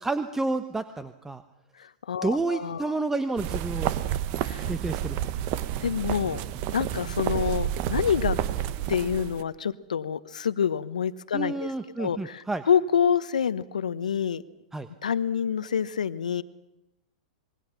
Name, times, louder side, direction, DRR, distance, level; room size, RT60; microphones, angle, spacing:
voice 1, 0.0-1.4 2.2-3.9 4.6-5.3 11.3-12.6 14.7-14.9, right 2 dB, 10° right, 10 dB, 1.1 m, -30 dB
voice 2, 1.8-2.9 4.4-4.6 5.8-6.4 6.7-8.4 8.9-11.7 12.0-14.4 15.0-16.4, left 7 dB, 80° left, 15 dB, 1.1 m, -27 dB
sound 1, 3.4-9.4, right 11 dB, 45° right, 1.3 m, -30 dB
26.0 x 22.5 x 5.9 m, 0.91 s
hypercardioid pair, 105°, 4 cm